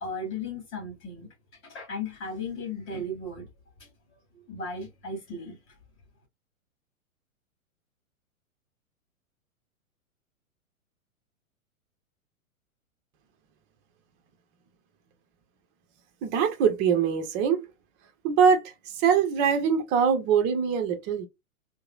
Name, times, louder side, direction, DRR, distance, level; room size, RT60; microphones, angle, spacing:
voice 1, 0.0-1.3 1.6-3.5 3.8-3.9 4.3-5.7, left 2 dB, 25° left, 2.1 m, -36 dB
voice 2, 16.2-17.7 18.2-18.6 19.0-21.3, right 7 dB, 25° right, 0.7 m, -23 dB
4.7 x 2.1 x 2.3 m
figure-of-eight pair, 110°, 42 cm